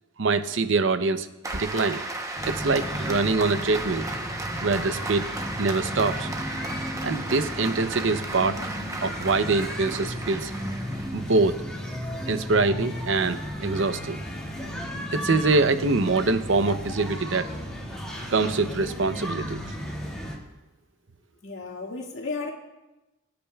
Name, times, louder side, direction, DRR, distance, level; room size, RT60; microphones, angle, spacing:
voice 1, 0.2-1.3 1.5-2.0 2.5-4.1 4.6-5.2 5.6-6.3 7.0-8.7 9.0-10.5 11.1-11.6 12.3-14.2 15.1-17.5 18.3-19.6, right 3 dB, 65° right, 10 dB, 0.7 m, -24 dB
Applause, 1.4-11.5, right 2 dB, 15° right, 0.8 m, -35 dB
sound 1, 2.3-20.4, equal, 5° left, 2.1 m, -34 dB
voice 2, 21.4-22.5, left 3 dB, 70° left, -1 dB, 2.0 m, -34 dB
24.5 x 8.7 x 2.3 m, 1.0 s
head